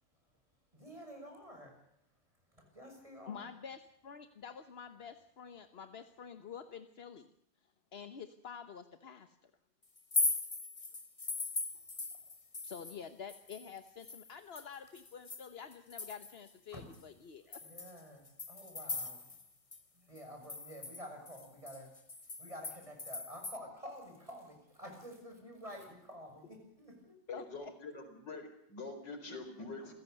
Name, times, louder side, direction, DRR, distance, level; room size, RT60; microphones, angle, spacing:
voice 1, 0.7-1.7 2.6-3.5 16.7-16.8 17.6-19.3 20.0-21.9 22.4-27.2, equal, 20° right, 3 dB, 6.8 m, -50 dB
voice 2, 3.3-7.3 7.9-9.5 12.6-17.6 27.3-27.7, left 7 dB, 40° left, 9 dB, 1.0 m, -48 dB
sound 1, 10.0-13.0 13.3-16.5 16.9-17.0 17.5-19.5 19.7-19.8 20.2-23.6, left 3 dB, 25° left, 0.9 m, -39 dB
voice 3, 27.3-29.9, left 3 dB, 75° left, 6 dB, 5.0 m, -45 dB
28.0 x 16.5 x 6.8 m, 0.75 s
omnidirectional pair, 1.9 m